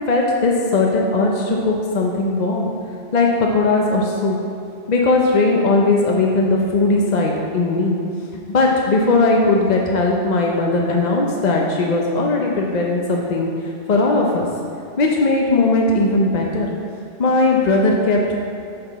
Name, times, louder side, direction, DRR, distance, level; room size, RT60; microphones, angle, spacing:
voice 1, 0.1-2.7 3.1-4.4 4.9-8.0 8.5-13.5 13.9-14.5 15.0-16.7 17.2-18.4, left 2 dB, 45° left, 0 dB, 0.6 m, -18 dB
6.6 x 5.8 x 4.5 m, 2.6 s
omnidirectional pair, 1.2 m